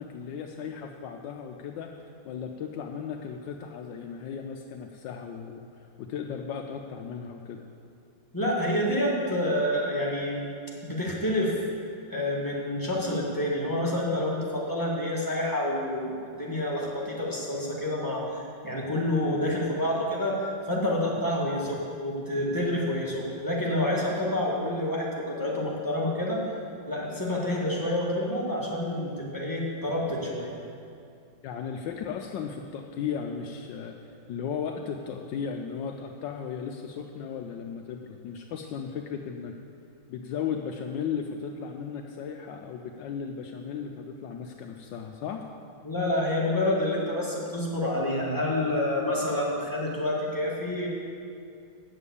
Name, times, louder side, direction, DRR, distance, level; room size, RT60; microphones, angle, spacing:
voice 1, 0.0-1.9 2.2-5.6 6.0-7.6 31.4-39.5 40.1-45.4, left 7 dB, 75° left, 3 dB, 1.2 m, -36 dB
voice 2, 8.3-10.4 10.8-11.6 12.1-26.4 26.9-30.5 45.8-50.9, left 1 dB, 10° left, -5 dB, 1.6 m, -28 dB
8.0 x 7.1 x 8.3 m, 2.5 s
omnidirectional pair, 2.1 m